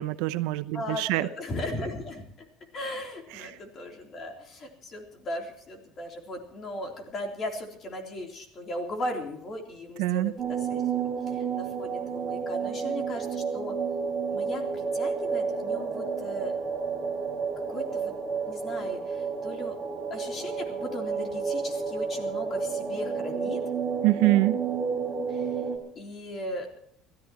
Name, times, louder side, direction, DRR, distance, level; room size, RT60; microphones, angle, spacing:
voice 1, 0.0-1.3 10.0-10.3 24.0-24.6, right 17 dB, 75° right, 13 dB, 0.8 m, -24 dB
voice 2, 0.7-2.2 2.7-13.7 14.3-16.5 17.7-18.1 18.4-19.7 20.1-23.6 25.3-25.6 25.9-26.7, left 1 dB, 30° left, 2 dB, 3.4 m, -37 dB
sound 1, 10.4-25.8, right 5 dB, 10° right, 2.8 m, -31 dB
29.5 x 13.5 x 3.0 m, 0.69 s
cardioid pair, 170°, 0 cm